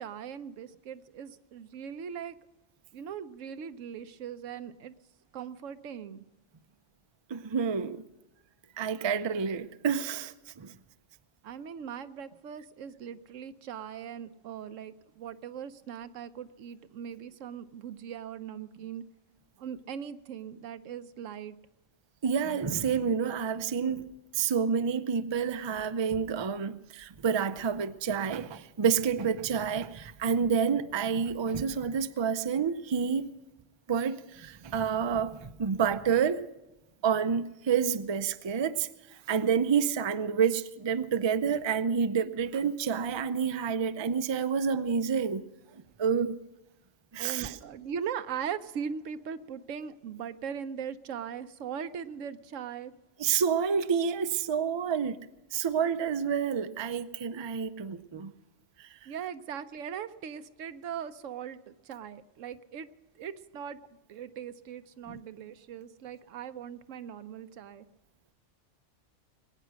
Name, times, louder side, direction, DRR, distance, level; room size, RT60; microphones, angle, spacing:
voice 1, 0.0-2.3 2.9-4.9 5.3-6.2 11.4-19.0 19.6-21.6 47.2-52.9 59.1-62.9 63.2-63.8 64.1-67.9, right 8 dB, 90° right, 1.1 m, -40 dB
voice 2, 7.3-8.0 8.8-10.7 22.2-24.0 24.3-33.3 33.9-36.4 37.0-38.9 39.3-45.4 46.0-46.4 47.1-47.6 53.2-55.2 55.5-58.3 58.8-58.9 65.1-65.2, right 6 dB, 40° right, 0.4 m, -29 dB
21.0 x 9.2 x 6.2 m
omnidirectional pair, 1.3 m